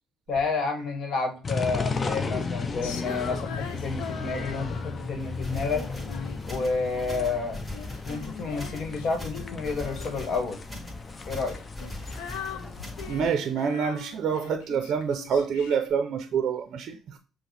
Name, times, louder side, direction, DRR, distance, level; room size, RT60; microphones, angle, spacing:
voice 1, 0.3-5.8 6.5-7.6 8.1-10.6 11.2-11.6, left 4 dB, 60° left, 1.2 m, -30 dB
sound 1, 1.4-13.3, left 4 dB, 35° left, 0.5 m, -35 dB
Female singing, 2.8-5.2 5.7-7.4 7.7-10.5 11.3-15.9, left 7 dB, 90° left, 0.5 m, -41 dB
sound 2, 5.2-13.2, left 1 dB, 15° left, 2.0 m, -41 dB
voice 2, 13.1-17.2, right 6 dB, 60° right, 0.5 m, -27 dB
5.9 x 2.0 x 3.2 m
supercardioid pair, 80°, 0 cm